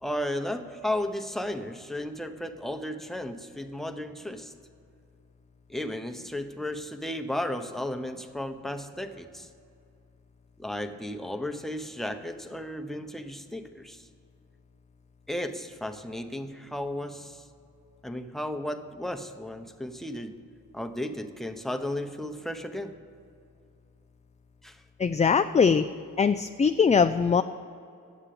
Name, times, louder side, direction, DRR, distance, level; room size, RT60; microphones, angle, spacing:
voice 1, 0.0-4.5 5.7-9.5 10.6-14.1 15.3-17.5 18.0-20.4 20.7-23.0 24.6-24.8, left 1 dB, ahead, 6 dB, 0.9 m, -34 dB
voice 2, 25.0-25.9 26.2-27.4, left 6 dB, 20° left, 9 dB, 0.3 m, -21 dB
9.1 x 7.3 x 8.5 m, 2.5 s
supercardioid pair, 45°, 35 cm